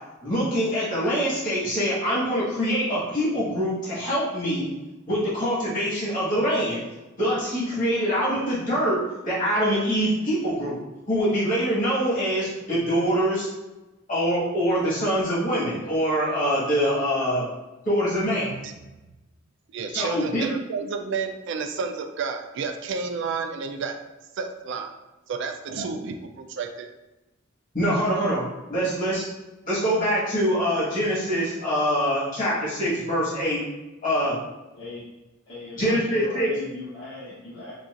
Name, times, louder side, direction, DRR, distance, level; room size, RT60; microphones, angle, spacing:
voice 1, 0.2-4.7 5.1-6.8 7.2-10.8 11.1-13.5 14.1-17.5 17.8-18.5 19.9-20.5 27.7-28.4 28.7-29.2 29.7-33.6 34.0-34.4 35.8-36.5, equal, 45° left, -9 dB, 1.4 m, -24 dB
voice 2, 18.4-18.7 19.7-24.0 24.4-24.9 25.3-26.9, right 5 dB, 65° right, 6 dB, 0.3 m, -31 dB
voice 3, 34.7-35.0 35.5-37.7, left 2 dB, 75° left, -11 dB, 1.1 m, -39 dB
4.0 x 2.3 x 2.5 m, 1.0 s
head